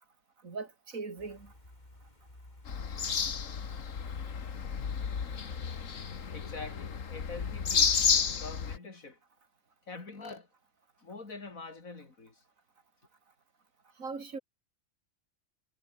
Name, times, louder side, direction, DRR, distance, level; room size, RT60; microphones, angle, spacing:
voice 1, 0.4-1.5 14.0-14.4, right 4 dB, 85° right, 3.1 m, -40 dB
sound 1, 1.2-6.5, left 1 dB, 30° left, 4.8 m, -57 dB
sound 2, 2.7-8.8, left 6 dB, 70° left, 1.9 m, -31 dB
voice 2, 6.3-9.2 9.9-10.5 11.0-12.4, left 3 dB, 85° left, 3.7 m, -45 dB
omnidirectional pair, 1.4 m